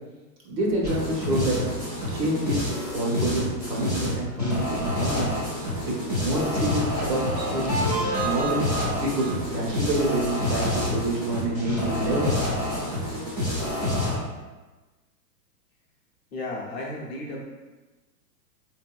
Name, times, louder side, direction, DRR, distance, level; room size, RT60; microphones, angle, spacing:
voice 1, 0.4-1.6 2.1-5.3 5.8-7.7 8.2-8.7 9.0-12.4, right 1 dB, 75° right, -3 dB, 1.2 m, -27 dB
sound 1, 0.8-14.2, left 1 dB, 30° right, 0.4 m, -28 dB
voice 2, 16.3-17.4, left 2 dB, 40° left, -4 dB, 0.6 m, -34 dB
3.9 x 2.7 x 2.2 m, 1.2 s
supercardioid pair, 175°, 49 cm